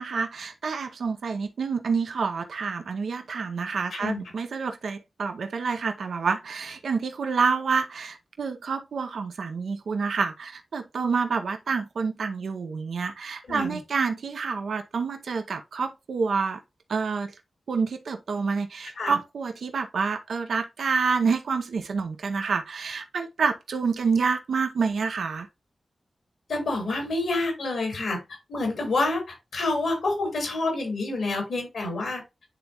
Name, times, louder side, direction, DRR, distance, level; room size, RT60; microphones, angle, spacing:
voice 1, 0.0-16.6 16.9-17.3 17.7-25.5, right 5 dB, 80° right, 0.7 m, -28 dB
voice 2, 3.9-4.2 13.5-13.8 19.0-19.2 26.5-28.2 28.5-32.2, left 2 dB, 90° left, 3.8 m, -28 dB
10.0 x 3.4 x 2.9 m
cardioid pair, 45°, 0 cm